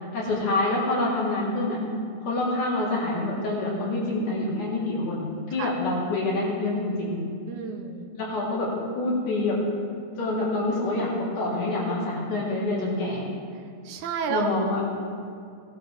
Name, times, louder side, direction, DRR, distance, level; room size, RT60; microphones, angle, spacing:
voice 1, 0.1-1.8 2.2-7.2 8.1-8.7 9.0-9.6 10.2-13.2 14.3-14.8, left 2 dB, 90° left, -7 dB, 5.3 m, -26 dB
voice 2, 7.5-8.1 13.8-14.5, right 6 dB, 80° right, 5 dB, 2.4 m, -30 dB
18.5 x 12.5 x 3.6 m, 2.3 s
omnidirectional pair, 3.5 m